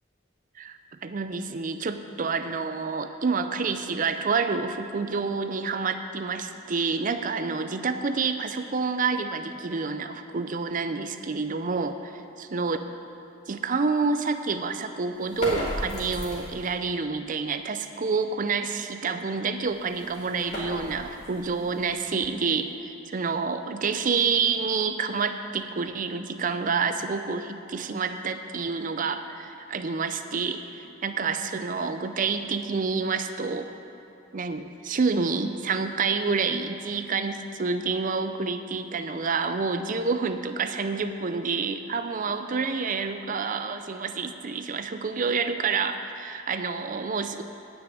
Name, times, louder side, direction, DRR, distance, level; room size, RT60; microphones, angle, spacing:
voice 1, 0.6-12.8 13.5-33.7 34.3-47.4, right 4 dB, 45° right, 9 dB, 0.5 m, -28 dB
sound 1, 15.2-16.8 19.5-22.5, left 1 dB, 35° left, 2.7 m, -36 dB
9.2 x 6.2 x 8.5 m, 2.9 s
head